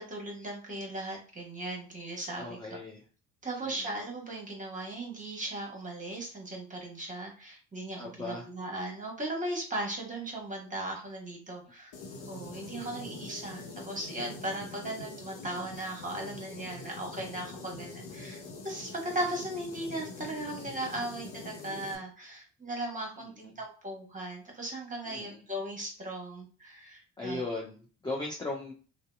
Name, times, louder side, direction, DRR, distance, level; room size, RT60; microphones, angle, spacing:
voice 1, 0.0-2.8 3.4-11.9 12.3-18.4 18.6-27.4, right 1 dB, 15° right, 0 dB, 1.2 m, -37 dB
voice 2, 2.4-3.0 3.6-3.8 8.0-8.5 23.4-23.5 25.1-25.4 27.2-28.7, left 2 dB, 10° left, -3 dB, 0.6 m, -37 dB
sound 1, 11.9-22.0, left 3 dB, 60° left, 0.8 m, -44 dB
2.6 x 2.2 x 2.3 m, 0.38 s
hypercardioid pair, 60°, 50 cm